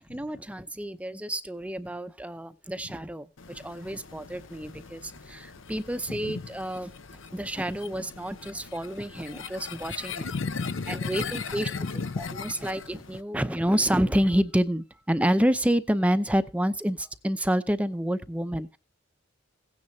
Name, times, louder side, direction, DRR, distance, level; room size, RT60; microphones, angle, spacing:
voice 1, 0.0-6.9 7.3-10.2 10.9-11.7 12.6-18.8, equal, 5° right, 0.6 m, -28 dB
sound 1, 3.4-13.2, left 6 dB, 85° left, 0.9 m, -41 dB
voice 2, 6.1-6.5 10.2-12.5, left 3 dB, 60° left, 0.5 m, -34 dB
17.0 x 9.8 x 2.8 m
head